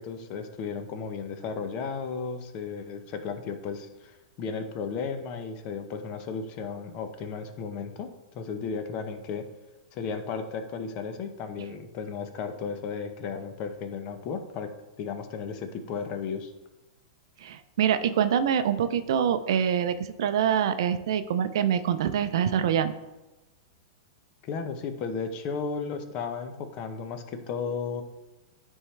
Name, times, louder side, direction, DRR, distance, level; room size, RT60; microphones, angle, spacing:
voice 1, 0.0-4.1 4.4-8.1 8.3-9.4 9.9-14.7 15.0-16.5 24.4-28.0, left 5 dB, 45° left, 7 dB, 0.8 m, -34 dB
voice 2, 17.4-22.9, right 8 dB, 70° right, 10 dB, 0.5 m, -25 dB
9.7 x 3.6 x 3.3 m, 1.0 s
hypercardioid pair, 130°, 2 cm